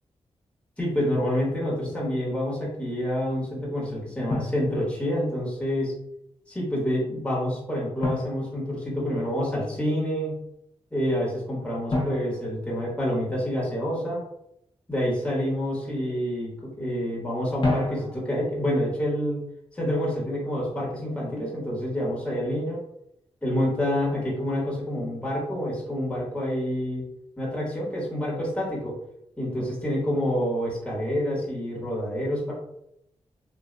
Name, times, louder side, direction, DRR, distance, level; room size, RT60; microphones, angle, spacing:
voice 1, 0.8-5.9 6.5-10.4 10.9-14.2 14.9-19.4 19.7-22.8 23.4-27.0 27.4-28.9 29.4-32.5, equal, 10° left, -5 dB, 1.3 m, -28 dB
Drum, 1.8-2.1 4.3-5.4 8.0-9.4 11.9-13.6 17.6-18.6, left 1 dB, 45° left, 0.9 m, -31 dB
3.7 x 2.5 x 2.2 m, 0.77 s
cardioid pair, 80°, 12 cm